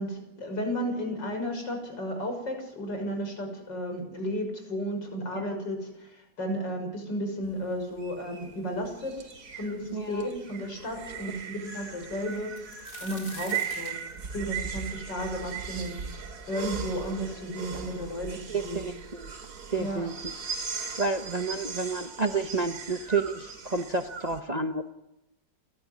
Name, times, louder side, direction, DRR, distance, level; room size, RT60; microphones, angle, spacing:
voice 1, 0.0-12.6 13.0-13.9 14.3-16.0 16.5-18.8 19.8-20.1, equal, 80° left, 4 dB, 6.5 m, -33 dB
sound 1, 7.4-24.4, right 6 dB, 65° right, 2.8 m, -38 dB
voice 2, 9.9-10.3 18.5-19.3 19.7-20.1 21.0-24.9, right 3 dB, 30° right, 6 dB, 0.9 m, -30 dB
sound 2, 12.3-16.1 16.6-16.7 17.5-17.6 17.8-18.5 19.4-19.5 19.9-20.1, left 2 dB, 60° left, 4.5 m, -47 dB
29.5 x 13.5 x 9.6 m, 0.91 s
omnidirectional pair, 1.9 m